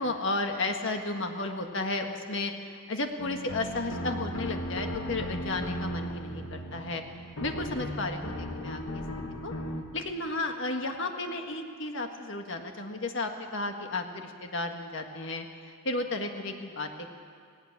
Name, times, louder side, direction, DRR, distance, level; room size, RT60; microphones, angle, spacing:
voice 1, 0.0-7.0 7.4-9.0 9.4-9.5 9.9-15.5 15.8-17.1, left 2 dB, 60° left, 4 dB, 1.7 m, -33 dB
sound 1, 3.2-9.8, equal, 75° left, 1.8 m, -36 dB
18.5 x 18.0 x 8.9 m, 2.1 s
head